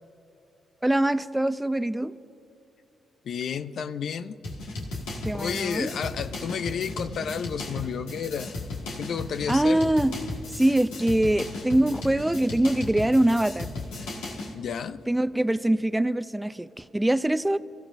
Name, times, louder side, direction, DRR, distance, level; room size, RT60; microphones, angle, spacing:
voice 1, 0.8-2.2 5.2-5.9 9.5-10.1 10.6-13.7 15.1-17.6, right 1 dB, 10° right, 0.5 m, -23 dB
voice 2, 3.2-4.4 5.3-8.5 9.0-9.8 14.5-15.1, left 7 dB, 65° left, 0.5 m, -31 dB
sound 1, 4.4-14.5, left 2 dB, 85° left, 2.0 m, -36 dB
29.5 x 14.5 x 2.6 m
hypercardioid pair, 45°, 0 cm